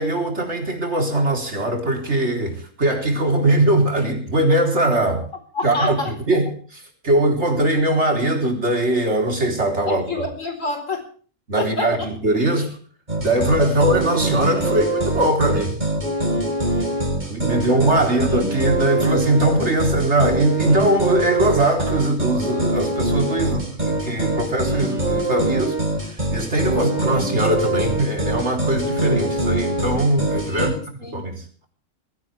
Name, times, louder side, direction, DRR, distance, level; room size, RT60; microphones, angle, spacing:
voice 1, 0.0-5.3 5.6-6.0 6.3-6.5 6.7-10.2 11.5-12.8 13.2-15.8 17.3-30.7 31.1-31.4, right 1 dB, 60° right, 4.3 m, -21 dB
voice 2, 5.5-6.1 9.8-11.0 11.6-12.1 14.5-14.9 16.6-18.2 26.7-27.1 30.4-31.2, left 2 dB, 80° left, 4.7 m, -30 dB
sound 1, 13.1-30.7, right 2 dB, 35° right, 5.1 m, -23 dB
20.0 x 16.5 x 3.5 m
omnidirectional pair, 1.3 m